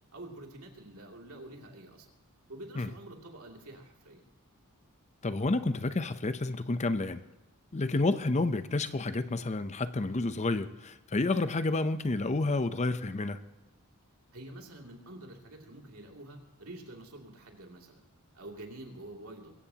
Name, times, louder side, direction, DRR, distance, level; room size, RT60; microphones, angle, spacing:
voice 1, 0.1-2.1 2.5-4.2 14.3-18.1 18.3-19.5, right 1 dB, 70° right, 2.7 m, -47 dB
voice 2, 5.2-7.2 7.7-13.4, left 2 dB, 30° left, 0.6 m, -30 dB
22.5 x 15.5 x 2.9 m
head